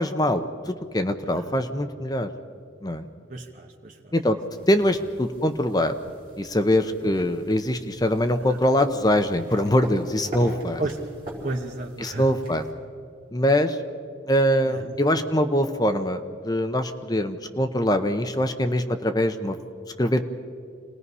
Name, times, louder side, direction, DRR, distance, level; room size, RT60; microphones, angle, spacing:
voice 1, 0.0-2.3 2.8-3.1 4.1-4.4 4.7-6.0 6.4-10.8 12.0-12.6 13.3-13.8 14.3-19.6 20.0-20.3, left 1 dB, 20° left, 7 dB, 0.8 m, -23 dB
voice 2, 3.3-4.1 4.5-4.6 6.8-7.1 8.4-8.6 10.8-11.0 11.4-12.3 14.6-15.0, right 2 dB, 45° right, 0 dB, 1.2 m, -34 dB
sound 1, 4.5-12.7, right 1 dB, 30° right, 5.3 m, -42 dB
27.5 x 19.5 x 5.5 m, 2.3 s
head